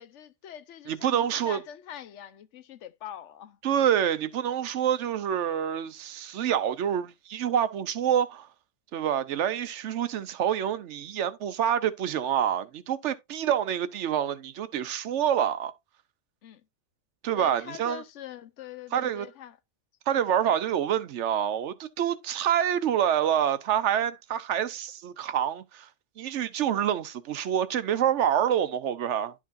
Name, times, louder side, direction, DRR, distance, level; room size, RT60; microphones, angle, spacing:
voice 1, 0.0-3.6 16.4-16.6 17.3-19.6 20.1-20.5, left 11 dB, 75° left, 1.0 m, -44 dB
voice 2, 0.9-1.6 3.6-8.5 8.9-15.7 17.2-18.0 18.9-19.3 20.1-25.9 26.2-29.3, right 9 dB, 75° right, 0.9 m, -27 dB
11.0 x 4.9 x 2.5 m
omnidirectional pair, 1.3 m